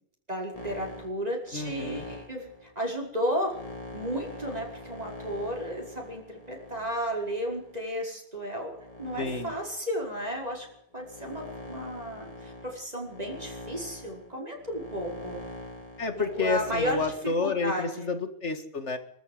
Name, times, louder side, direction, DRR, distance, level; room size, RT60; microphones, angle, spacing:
voice 1, 0.3-3.6 3.9-8.7 9.0-10.7 10.9-15.4 16.2-17.0 17.4-18.1, equal, 35° right, -1 dB, 5.7 m, -33 dB
sound 1, 0.5-7.9 8.5-17.1, left 1 dB, 30° left, 3.7 m, -44 dB
voice 2, 1.5-2.1 9.2-9.5 16.0-19.0, left 4 dB, 80° left, 7 dB, 2.5 m, -30 dB
25.0 x 13.5 x 8.0 m, 0.75 s
omnidirectional pair, 1.2 m